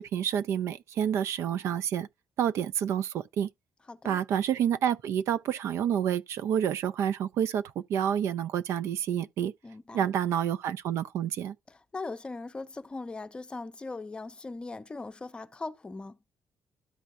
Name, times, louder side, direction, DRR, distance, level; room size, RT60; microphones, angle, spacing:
voice 1, 0.0-2.1 2.4-3.5 4.0-9.5 9.9-11.5, right 9 dB, 75° right, 0.5 m, -29 dB
voice 2, 3.9-4.2 9.6-10.1 11.7-16.2, left 3 dB, 20° left, 0.6 m, -40 dB
13.0 x 4.5 x 2.5 m
cardioid pair, 120°, 5 cm